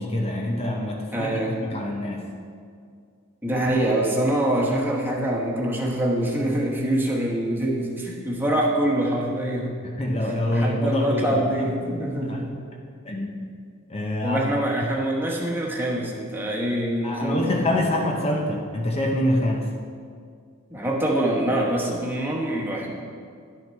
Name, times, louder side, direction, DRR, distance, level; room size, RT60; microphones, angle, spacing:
voice 1, 0.0-1.3 1.6-2.3 9.8-11.8 12.3-12.4 13.1-13.4 13.9-14.5 17.0-19.7, left 1 dB, 30° left, 0 dB, 0.7 m, -25 dB
voice 2, 1.1-1.5 3.4-9.8 10.5-12.6 14.2-17.7 20.7-22.9, right 1 dB, 10° right, -3 dB, 1.2 m, -25 dB
10.5 x 6.5 x 4.5 m, 2.2 s
head